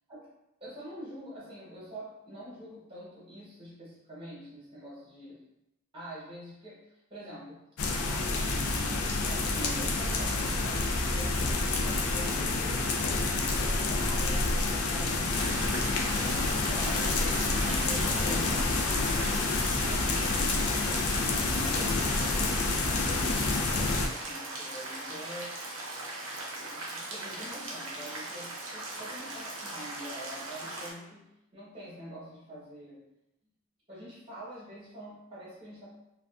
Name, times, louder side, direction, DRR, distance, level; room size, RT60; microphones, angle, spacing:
voice 1, 0.6-5.4 5.9-6.8 7.1-7.6 7.9-12.9 13.5-15.8 16.7-17.1 17.6-22.7 23.7-25.5 26.6-31.3 31.5-33.0 33.9-35.9, equal, 25° right, -8 dB, 0.9 m, -45 dB
sound 1, 7.8-24.1, left 3 dB, 70° left, 0.4 m, -28 dB
sound 2, 15.3-30.9, right 2 dB, 65° right, 0.6 m, -39 dB
2.5 x 2.2 x 2.3 m, 0.87 s
head